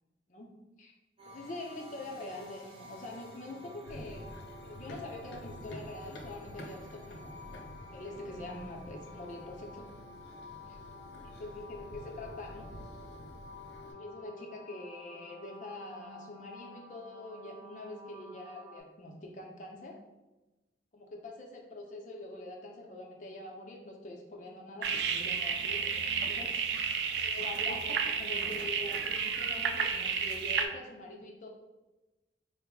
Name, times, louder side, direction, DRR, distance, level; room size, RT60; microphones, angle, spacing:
sound 1, 1.2-18.8, left 2 dB, 30° right, 0.6 m, -51 dB
voice 1, 1.3-4.3 4.6-7.3 7.9-9.8 11.2-12.7 13.9-20.0 20.9-26.8 27.2-31.5, left 2 dB, 45° left, 1 dB, 0.5 m, -44 dB
Run, 3.9-13.9, equal, 90° left, 0.6 m, -48 dB
sound 2, 24.8-30.7, right 6 dB, 70° right, 0.3 m, -32 dB
3.8 x 2.0 x 3.5 m, 1.1 s
head